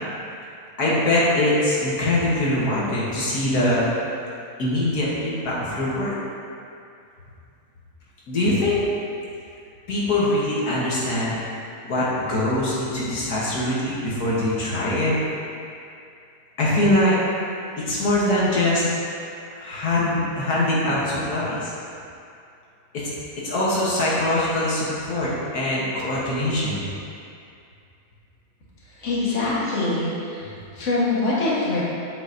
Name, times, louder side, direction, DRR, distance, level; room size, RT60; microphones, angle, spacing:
voice 1, 0.8-3.9 4.6-6.1 8.3-8.8 9.9-11.4 11.8-15.1 16.6-17.1 17.8-18.8 19.5-21.7 22.9-23.1 23.4-26.9, left 1 dB, 80° left, -7 dB, 1.7 m, -22 dB
voice 2, 28.9-31.8, left 2 dB, 50° left, -7 dB, 1.8 m, -24 dB
8.1 x 7.0 x 2.7 m, 2.5 s
omnidirectional pair, 1.6 m